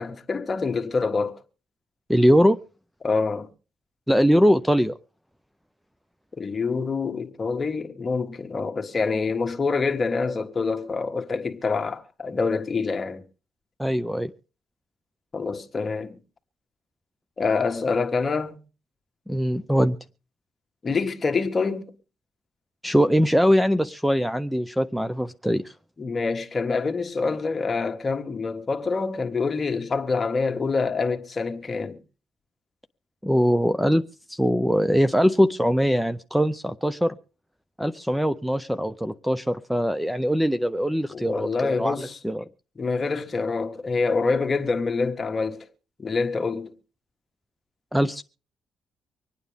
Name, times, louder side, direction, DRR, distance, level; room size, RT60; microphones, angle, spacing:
voice 1, 0.0-1.4 3.0-3.5 6.4-13.2 15.3-16.2 17.4-18.6 20.8-21.9 26.0-32.0 41.1-42.2 42.8-45.7 46.0-46.7, left 4 dB, 35° left, 1.6 m, -26 dB
voice 2, 2.1-2.6 4.1-5.0 13.8-14.3 19.3-20.0 22.8-25.7 33.2-37.1 37.8-42.4 47.9-48.2, equal, ahead, 0.6 m, -22 dB
25.0 x 9.4 x 3.5 m
cardioid pair, 90°, 0 cm